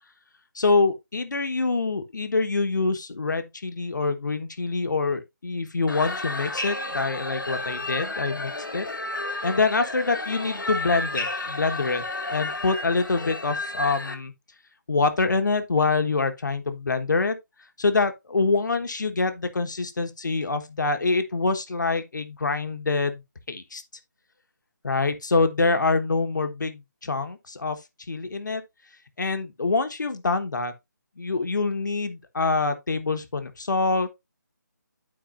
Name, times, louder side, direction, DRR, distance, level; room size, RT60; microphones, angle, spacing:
voice 1, 0.5-8.9 9.4-14.3 14.9-17.4 17.8-23.2 23.5-23.8 24.8-27.8 28.1-28.6 29.2-30.7 31.2-34.1, left 3 dB, 70° left, 1.3 m, -25 dB
sound 1, 5.9-14.1, left 2 dB, 90° left, 1.7 m, -32 dB
12.0 x 4.7 x 2.5 m
figure-of-eight pair, 160°, 10 cm